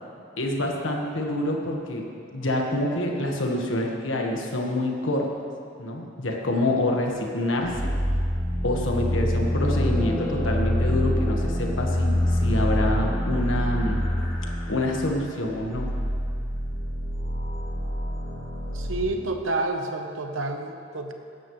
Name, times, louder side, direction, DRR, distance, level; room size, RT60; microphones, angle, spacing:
voice 1, 0.4-2.1 2.3-5.3 5.8-7.9 8.6-14.0 14.7-15.9, left 1 dB, 75° left, 1 dB, 1.5 m, -26 dB
sound 1, 7.6-19.1, equal, 20° left, 3.4 m, -26 dB
voice 2, 18.7-21.1, right 2 dB, 85° right, 5 dB, 0.9 m, -29 dB
15.5 x 11.5 x 3.2 m, 2.5 s
head